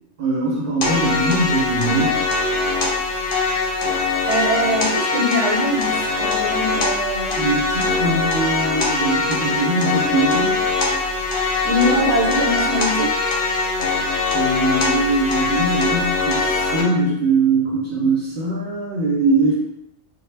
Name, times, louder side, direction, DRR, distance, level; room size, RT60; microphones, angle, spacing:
voice 1, 0.2-2.2 7.3-10.6 14.3-19.5, right 2 dB, 55° right, -5 dB, 0.7 m, -21 dB
sound 1, 0.8-16.8, left 3 dB, 60° left, 0.7 m, -22 dB
voice 2, 4.3-7.4 11.6-13.1, equal, 85° right, -2 dB, 1.0 m, -22 dB
2.0 x 2.0 x 3.2 m, 0.83 s
omnidirectional pair, 1.2 m